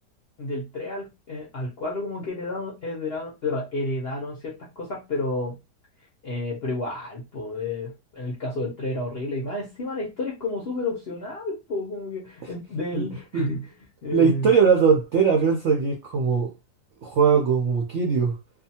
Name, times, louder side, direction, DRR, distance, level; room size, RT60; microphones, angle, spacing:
voice 1, 0.4-5.6 6.2-13.7 14.0-14.5, left 2 dB, 60° left, 0.6 m, -31 dB
voice 2, 14.1-16.5 17.0-18.4, right 6 dB, 70° right, 0.7 m, -20 dB
2.6 x 2.4 x 2.7 m
omnidirectional pair, 1.9 m